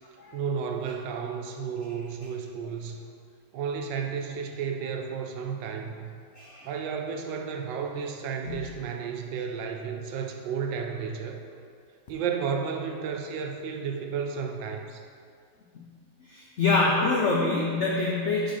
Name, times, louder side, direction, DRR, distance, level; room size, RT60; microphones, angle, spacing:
voice 1, 0.3-3.0 3.5-6.1 6.6-11.4 12.1-15.0, right 6 dB, 80° right, 3 dB, 1.3 m, -32 dB
voice 2, 6.4-6.7 8.5-8.6 16.2-18.5, left 3 dB, 85° left, -2 dB, 0.6 m, -25 dB
5.4 x 4.8 x 4.4 m, 2.3 s
omnidirectional pair, 2.0 m